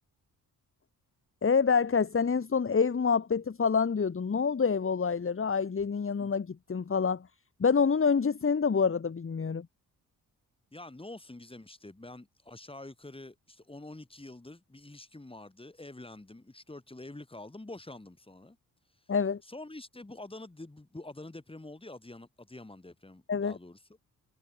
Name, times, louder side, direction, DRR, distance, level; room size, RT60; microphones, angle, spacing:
voice 1, 1.4-7.3 7.6-9.7 19.1-19.4 23.3-23.6, left 5 dB, 35° left, 2.0 m, -27 dB
voice 2, 10.7-18.6 19.4-23.8, left 2 dB, 15° left, 5.7 m, -46 dB
cardioid pair, 75°, 37 cm